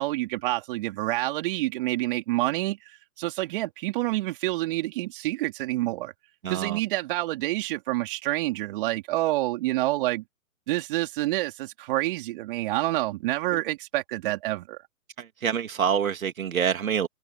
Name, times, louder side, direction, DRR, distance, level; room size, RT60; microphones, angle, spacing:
voice 1, 0.0-2.8 3.2-6.1 6.5-10.2 10.7-14.8, right 18 dB, 35° right, 4.2 m, -28 dB
voice 2, 6.4-6.8 15.2-17.1, right 8 dB, 65° right, 2.5 m, -26 dB
hypercardioid pair, 140°, 44 cm